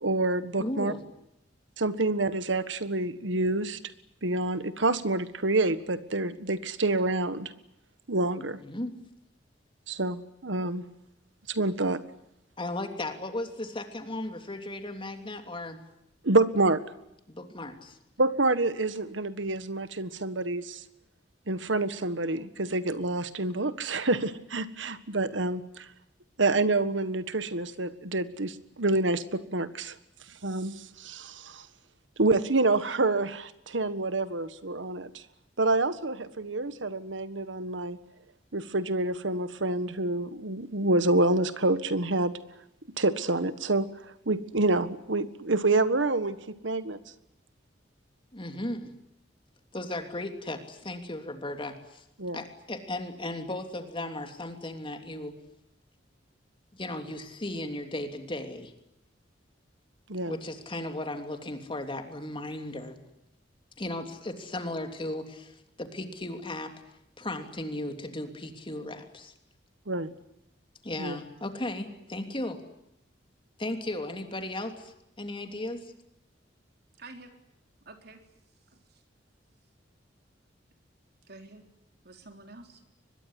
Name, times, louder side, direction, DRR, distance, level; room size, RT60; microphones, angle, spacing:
voice 1, 0.0-0.9 1.8-3.8 4.2-7.5 8.1-8.6 9.9-10.8 11.5-12.0 16.2-16.8 18.2-20.8 21.5-25.9 26.4-29.9 30.4-31.6 32.2-35.2 35.6-38.0 38.5-42.3 43.0-43.9 44.2-47.0 52.2-52.4 60.1-60.3 69.9-70.1 71.0-71.2, right 2 dB, 80° right, 13 dB, 1.6 m, -27 dB
voice 2, 0.6-1.0 8.6-9.0 12.6-15.8 17.3-18.0 48.3-48.9 49.7-52.0 52.3-55.4 56.7-58.7 60.3-63.0 63.8-66.8 67.2-69.3 70.8-72.6 73.6-75.9, left 1 dB, 30° left, 6 dB, 3.1 m, -36 dB
voice 3, 77.0-77.3 77.9-78.2 78.7-79.0 81.3-81.6 82.0-82.8, right 2 dB, 60° right, 5 dB, 3.9 m, -48 dB
24.0 x 21.5 x 9.8 m, 0.81 s
head